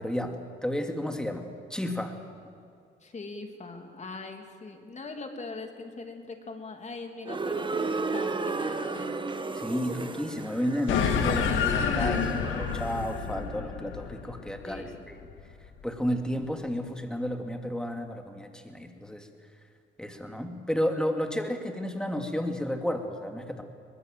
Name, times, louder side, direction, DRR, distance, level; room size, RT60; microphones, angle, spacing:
voice 1, 0.0-1.4 1.7-2.1 9.5-15.2 15.8-19.3 20.0-23.6, equal, 5° left, 4 dB, 2.7 m, -32 dB
voice 2, 3.0-9.3 9.5-9.6 14.6-15.0, left 3 dB, 35° left, 4 dB, 3.0 m, -41 dB
sound 1, 7.3-13.2, right 3 dB, 25° right, 1.4 m, -34 dB
sound 2, 10.9-15.6, left 6 dB, 85° left, 2.0 m, -29 dB
23.0 x 20.0 x 7.8 m, 2.3 s
cardioid pair, 90°, 20 cm